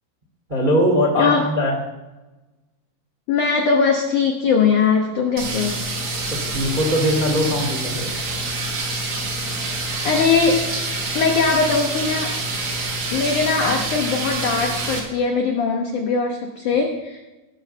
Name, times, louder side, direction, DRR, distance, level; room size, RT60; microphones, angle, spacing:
voice 1, 0.5-1.7 6.3-8.1, equal, 25° right, 0 dB, 1.0 m, -21 dB
voice 2, 1.1-1.5 3.3-5.8 10.0-10.6 11.1-12.4 13.1-17.2, left 5 dB, 85° left, 2 dB, 1.7 m, -20 dB
sound 1, 5.4-15.0, right 2 dB, 50° right, 3.3 m, -26 dB
18.5 x 6.8 x 6.6 m, 1.1 s
omnidirectional pair, 5.5 m